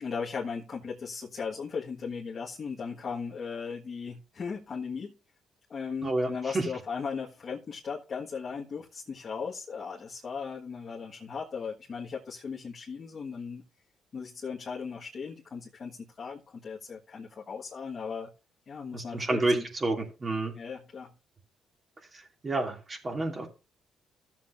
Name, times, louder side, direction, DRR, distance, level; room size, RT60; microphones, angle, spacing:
voice 1, 0.0-5.2 5.7-13.6 14.1-18.3 18.7-19.6 20.5-21.1, left 5 dB, 45° left, 1.5 m, -37 dB
voice 2, 6.0-6.7 18.9-20.6 22.1-23.5, right 2 dB, 30° right, 2.5 m, -30 dB
14.0 x 7.4 x 2.6 m
cardioid pair, 90°, 0 cm